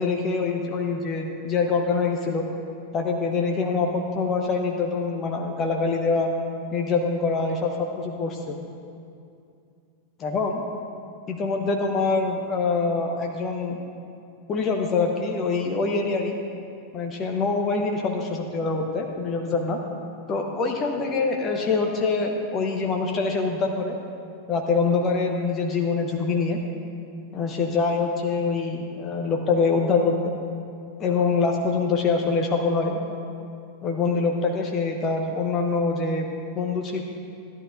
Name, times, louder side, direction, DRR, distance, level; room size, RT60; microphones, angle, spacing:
voice 1, 0.0-2.5 2.9-6.3 6.7-8.6 10.2-10.6 11.3-13.8 14.5-16.4 16.9-19.8 20.3-24.0 24.5-26.6 27.3-30.3 31.0-33.1 33.8-36.3 36.5-37.0, left 4 dB, 30° left, 2 dB, 0.8 m, -24 dB
15.0 x 11.0 x 2.6 m, 2.5 s
figure-of-eight pair, 90°, 0 cm